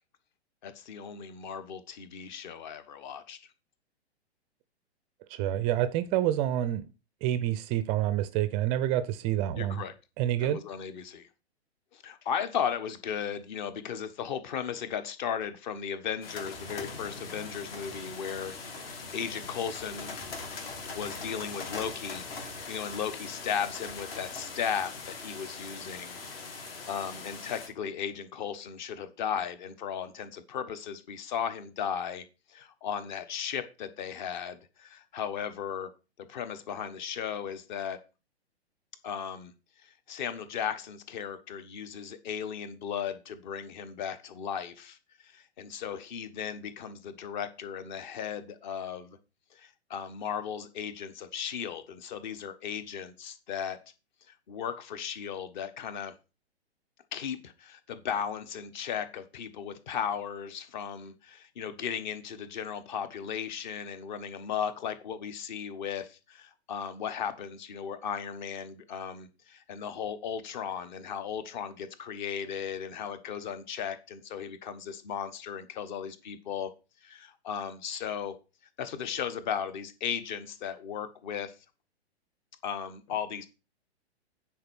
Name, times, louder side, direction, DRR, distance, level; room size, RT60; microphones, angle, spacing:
voice 1, 0.6-3.4 9.5-9.9 10.4-11.3 11.9-20.1 20.9-26.2 26.5-32.2 32.5-35.9 36.3-38.0 39.0-39.5 39.8-45.0 45.2-49.2 49.5-53.8 54.3-56.1 57.1-76.7 77.0-78.3 78.8-81.5 82.6-83.5, left 8 dB, 45° left, 1.3 m, -36 dB
voice 2, 5.3-6.9 7.2-9.8 10.2-10.6, right 12 dB, 20° right, 0.4 m, -28 dB
sound 1, 16.2-27.7, left 4 dB, 60° left, 2.5 m, -41 dB
9.4 x 4.7 x 6.2 m
figure-of-eight pair, 115°, 33 cm